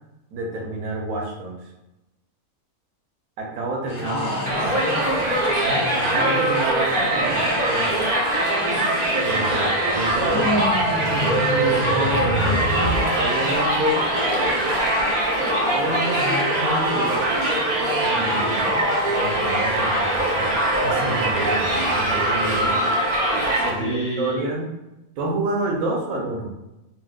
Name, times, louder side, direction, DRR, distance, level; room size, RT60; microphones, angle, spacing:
voice 1, 0.3-1.6 3.4-4.3 5.6-8.0 9.2-10.6 11.0-12.2 12.6-14.1 15.7-17.2 17.9-18.7 19.1-22.8 23.5-24.7 25.2-26.5, right 2 dB, 70° right, 0 dB, 1.1 m, -29 dB
sound 1, 3.9-20.0, left 2 dB, 45° left, 0.6 m, -38 dB
voice 2, 4.0-5.8 6.1-6.6 10.3-11.6 18.3-18.8 22.6-22.9 23.7-24.5, equal, 70° left, -5 dB, 1.2 m, -30 dB
Crowd, 4.5-23.7, right 1 dB, 40° right, 0.6 m, -22 dB
sound 2, 10.0-20.0 20.3-20.6 21.3-22.3, right 1 dB, 85° left, 1.4 m, -32 dB
4.1 x 2.2 x 2.3 m, 0.96 s
omnidirectional pair, 1.5 m